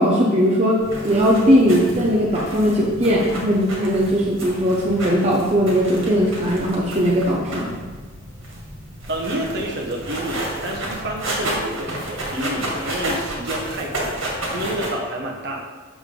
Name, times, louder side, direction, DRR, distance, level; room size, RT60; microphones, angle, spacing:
voice 1, 0.0-7.7, equal, 30° right, -4 dB, 0.8 m, -19 dB
sound 1, 0.8-14.9, right 1 dB, 80° right, 2.1 m, -31 dB
voice 2, 9.1-15.6, right 1 dB, 50° right, -1 dB, 1.2 m, -29 dB
6.9 x 6.7 x 3.8 m, 1.4 s
head